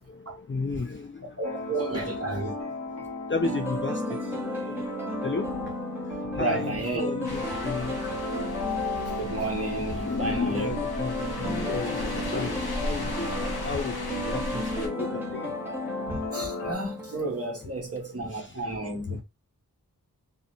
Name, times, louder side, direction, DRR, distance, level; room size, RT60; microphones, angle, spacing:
voice 1, 0.0-1.4 1.9-2.1 3.3-4.9 5.2-5.5 6.3-8.0 10.1-15.5 18.3-18.5, left 4 dB, 35° left, 0.4 m, -33 dB
sound 1, 1.4-16.7, left 2 dB, 55° left, 1.0 m, -35 dB
voice 2, 1.4-2.5 6.3-7.1 9.2-10.8 16.1-19.2, right 2 dB, 40° right, 1.0 m, -32 dB
sound 2, 3.4-17.7, left 1 dB, 5° right, 0.7 m, -36 dB
sound 3, 7.2-14.9, left 1 dB, 90° left, 0.8 m, -36 dB
2.5 x 2.0 x 2.8 m
wide cardioid pair, 45°, 36 cm